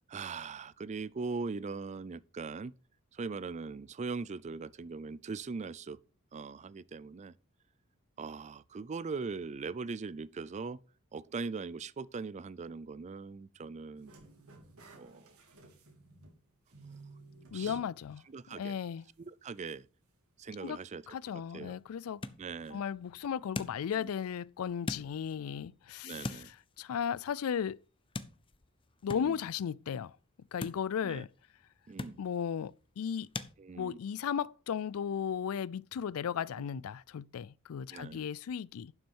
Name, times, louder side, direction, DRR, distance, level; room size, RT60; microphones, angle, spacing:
voice 1, 0.1-2.7 3.1-6.0 6.3-7.3 8.2-10.8 11.1-14.1 15.0-15.3 17.5-17.8 18.3-18.8 19.2-19.8 20.4-21.0 21.5-21.8 22.4-22.8 24.0-24.1 26.0-26.5 29.1-29.4 31.0-31.3 31.9-32.2 33.6-34.0 37.9-38.2, right 4 dB, 35° right, 0.4 m, -40 dB
sound 1, 14.0-16.4 16.7-17.9 18.3-18.4 19.7-19.8, right 2 dB, 90° right, 2.8 m, -54 dB
voice 2, 17.5-18.2 18.6-19.1 20.6-20.8 21.1-22.2 22.7-27.8 29.0-30.2 30.5-31.3 32.2-33.3 33.8-38.9, left 7 dB, 80° left, 0.4 m, -35 dB
sound 2, 21.0-33.5, left 2 dB, 25° left, 0.6 m, -46 dB
11.5 x 6.3 x 4.5 m
head